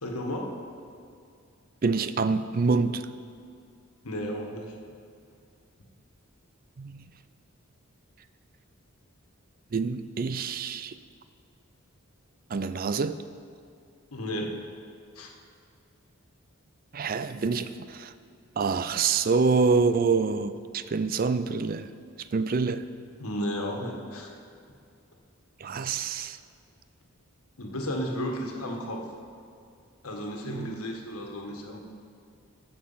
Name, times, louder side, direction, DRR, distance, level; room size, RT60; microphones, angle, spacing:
voice 1, 0.0-0.5 4.0-4.8 14.1-14.6 15.1-15.3 23.2-24.3 27.6-29.0 30.0-31.8, equal, 85° left, 1 dB, 1.5 m, -33 dB
voice 2, 1.8-3.0 6.8-7.1 9.7-11.0 12.5-13.2 16.9-18.1 18.6-21.9 22.3-22.8 25.6-26.4 30.5-30.8, right 4 dB, 40° right, 12 dB, 0.4 m, -26 dB
15.0 x 6.6 x 5.7 m, 2.4 s
head